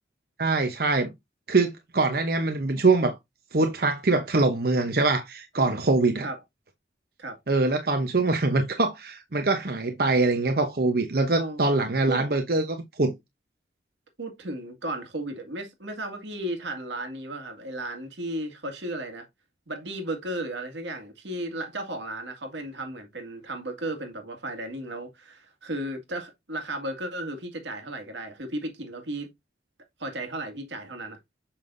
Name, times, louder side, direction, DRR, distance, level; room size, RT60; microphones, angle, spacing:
voice 1, 0.4-1.1 1.5-3.2 3.5-6.3 7.5-13.1, right 3 dB, 55° right, 0.8 m, -23 dB
voice 2, 14.2-19.3 19.7-29.3 30.0-31.2, right 1 dB, 85° right, 2.0 m, -34 dB
6.8 x 5.7 x 2.6 m
head